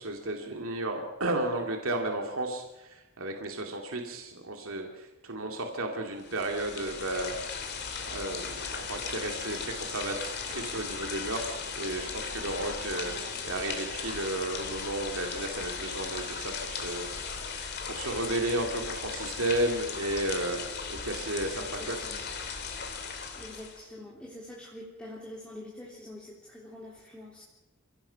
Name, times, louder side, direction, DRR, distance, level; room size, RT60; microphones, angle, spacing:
voice 1, 0.0-7.4 8.0-20.6 20.9-22.0, right 1 dB, 75° right, 2 dB, 2.5 m, -33 dB
sound 1, 6.2-23.8, left 5 dB, 50° left, 2.8 m, -37 dB
voice 2, 13.0-13.4 21.6-22.3 23.3-27.4, left 1 dB, 5° left, -5 dB, 3.2 m, -46 dB
29.0 x 16.5 x 5.8 m, 1.0 s
head